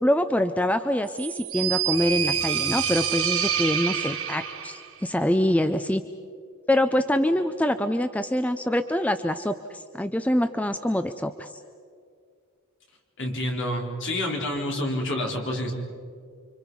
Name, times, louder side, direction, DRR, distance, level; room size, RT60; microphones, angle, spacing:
voice 1, 0.0-6.0 6.7-11.5, left 1 dB, 5° left, 9 dB, 0.5 m, -25 dB
sound 1, 1.1-4.9, right 9 dB, 80° right, 3.4 m, -27 dB
voice 2, 13.2-15.7, left 1 dB, 55° left, 0 dB, 3.8 m, -28 dB
29.5 x 25.0 x 5.4 m, 2.2 s
head